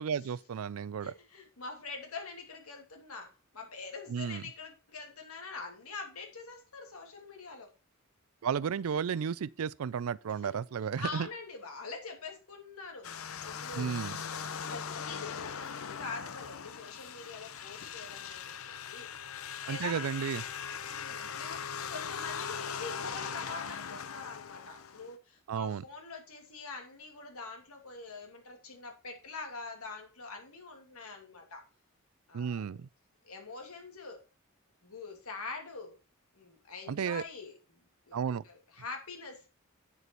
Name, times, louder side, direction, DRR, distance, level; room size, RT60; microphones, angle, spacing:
voice 1, 0.0-1.1 4.1-4.4 8.4-11.3 13.7-14.1 19.7-20.4 25.5-25.8 32.3-32.9 36.9-37.2 38.1-38.4, right 7 dB, 75° right, 0.4 m, -33 dB
voice 2, 1.0-7.7 10.4-10.6 11.0-20.4 20.8-31.6 32.3-32.8 33.2-34.2 34.8-36.0 36.3-37.8 38.1-39.5, left 4 dB, 90° left, 2.5 m, -45 dB
sound 1, 13.0-25.1, left 7 dB, 70° left, 0.7 m, -40 dB
8.7 x 6.7 x 4.5 m
head